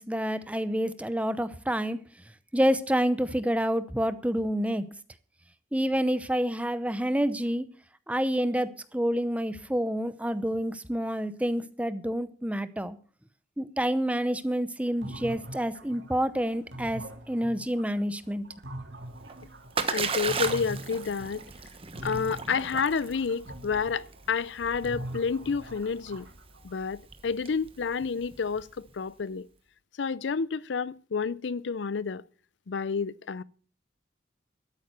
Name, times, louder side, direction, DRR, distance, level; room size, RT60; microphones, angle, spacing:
voice 1, 0.0-2.0 2.5-4.8 5.7-7.7 8.1-13.0 13.6-18.4, equal, 10° right, 0.7 m, -28 dB
Boyler air water, 15.0-21.7 21.9-26.9, right 1 dB, 80° right, 2.5 m, -43 dB
Splash splatter, 19.1-28.9, right 5 dB, 30° right, 1.1 m, -36 dB
voice 2, 19.9-21.5 22.0-26.3 26.6-29.5 30.0-32.2 32.7-33.4, left 5 dB, 80° left, 0.5 m, -30 dB
12.5 x 8.9 x 6.8 m
head